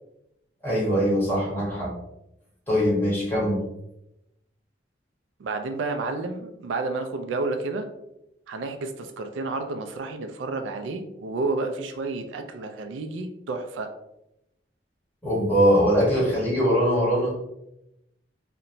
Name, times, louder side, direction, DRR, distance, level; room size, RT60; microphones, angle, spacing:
voice 1, 0.6-1.9 2.7-3.6 15.2-17.4, equal, 10° left, -7 dB, 1.0 m, -22 dB
voice 2, 5.4-7.9 8.5-13.9, right 3 dB, 85° right, 6 dB, 0.3 m, -30 dB
2.8 x 2.1 x 2.5 m, 0.87 s
head